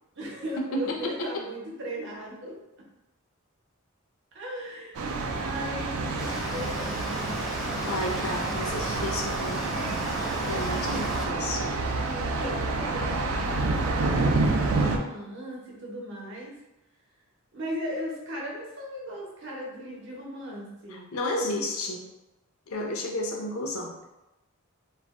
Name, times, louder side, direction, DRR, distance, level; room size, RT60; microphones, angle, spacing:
voice 1, 0.2-2.6 4.3-7.4 10.8-11.1 12.1-14.1 14.4-16.6 17.5-21.0, equal, 60° right, -3 dB, 0.7 m, -38 dB
voice 2, 0.7-1.3 7.8-9.7 10.5-11.7 20.9-22.0 22.7-24.1, left 1 dB, 90° left, 1 dB, 0.5 m, -32 dB
Thunder, 4.9-15.0, right 3 dB, 85° right, 0.4 m, -28 dB
sound 1, 6.2-11.3, equal, ahead, 0.4 m, -35 dB
2.4 x 2.1 x 3.5 m, 0.96 s
head